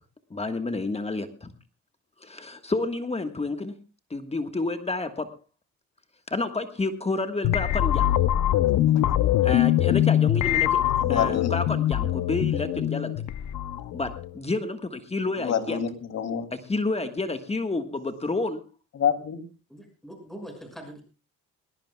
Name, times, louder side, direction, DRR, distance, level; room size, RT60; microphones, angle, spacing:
voice 1, 0.3-1.5 2.2-3.7 4.1-5.3 6.3-8.4 9.4-10.8 11.1-13.1 13.9-15.8 16.5-18.6, left 3 dB, 20° left, 8 dB, 1.4 m, -30 dB
sound 1, 7.4-14.3, left 12 dB, 80° left, 0.8 m, -23 dB
voice 2, 11.0-11.5 15.4-16.5 19.0-19.4, left 8 dB, 60° left, 8 dB, 2.8 m, -27 dB
voice 3, 19.7-21.0, right 1 dB, ahead, 4 dB, 6.1 m, -42 dB
20.5 x 19.0 x 2.3 m, 0.33 s
cardioid pair, 90°, 30 cm